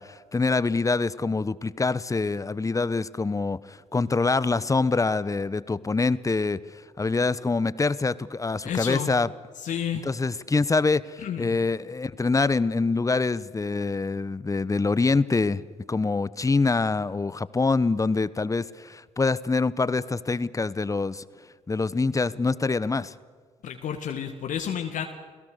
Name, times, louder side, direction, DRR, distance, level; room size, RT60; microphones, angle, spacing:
voice 1, 0.0-9.3 10.0-15.6 15.9-21.2 21.7-23.1, left 3 dB, 20° left, 18 dB, 1.0 m, -25 dB
voice 2, 8.6-9.1 9.6-10.1 11.2-11.6 23.6-25.1, left 9 dB, 60° left, 5 dB, 1.8 m, -31 dB
30.0 x 17.5 x 6.8 m, 1.5 s
hypercardioid pair, 45°, 15 cm